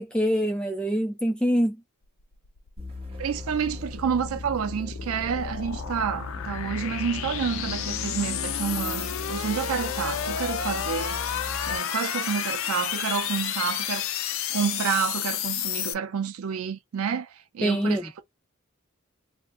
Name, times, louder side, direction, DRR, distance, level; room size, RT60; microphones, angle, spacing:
voice 1, 0.0-1.8 17.6-18.1, equal, 5° left, 0.3 m, -24 dB
sound 1, 2.2-15.9, left 9 dB, 70° left, 0.5 m, -31 dB
sound 2, 2.8-11.9, left 2 dB, 25° right, 1.0 m, -38 dB
voice 2, 3.2-11.2 11.7-14.1 14.5-18.2, right 7 dB, 80° right, 0.4 m, -29 dB
2.4 x 2.1 x 3.8 m
head